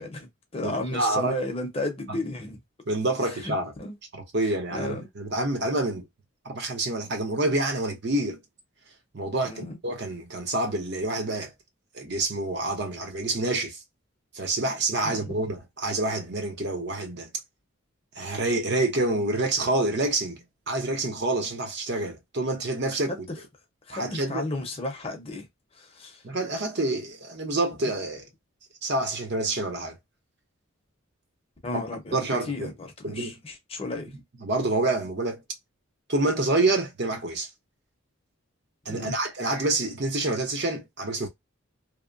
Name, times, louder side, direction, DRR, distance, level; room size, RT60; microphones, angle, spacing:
voice 1, 0.0-2.6 3.4-3.9 4.7-5.0 9.5-9.8 15.0-15.3 23.9-25.4 25.8-26.2 31.6-32.2 32.5-34.1 38.9-39.2, left 2 dB, 30° left, 0.7 m, -33 dB
voice 2, 0.6-1.4 2.9-3.7 4.1-6.0 6.4-8.4 9.1-11.5 11.9-13.8 14.3-17.3 18.2-23.1 23.9-24.5 26.2-28.2 28.8-29.9 31.7-31.8 32.1-32.7 33.0-33.4 34.4-35.4 36.1-37.5 38.9-41.3, right 2 dB, 50° right, 0.8 m, -27 dB
2.8 x 2.1 x 2.5 m
head